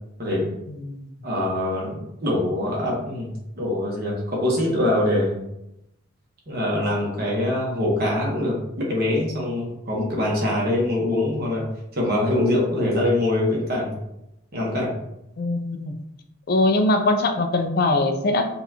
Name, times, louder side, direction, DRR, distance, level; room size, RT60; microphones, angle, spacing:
voice 1, 0.2-0.5 1.2-3.3 3.6-5.4 6.5-11.6 11.9-13.9 14.5-14.9, left 1 dB, 50° right, -3 dB, 1.1 m, -23 dB
voice 2, 15.4-15.9 16.5-18.5, left 2 dB, 50° left, 6 dB, 0.4 m, -21 dB
4.1 x 2.4 x 2.8 m, 0.84 s
head